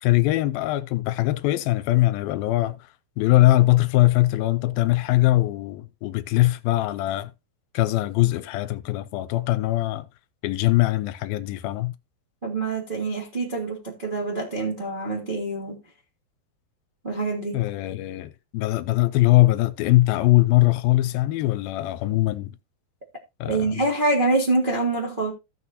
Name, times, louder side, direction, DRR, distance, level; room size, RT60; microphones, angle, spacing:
voice 1, 0.0-2.8 3.2-7.3 7.7-10.1 10.4-11.9 17.5-22.6 23.4-23.7, left 17 dB, 80° left, 2.3 m, -21 dB
voice 2, 12.4-15.8 17.0-17.6 23.4-25.3, right 2 dB, 70° right, 0.5 m, -25 dB
16.0 x 6.2 x 2.7 m
omnidirectional pair, 4.4 m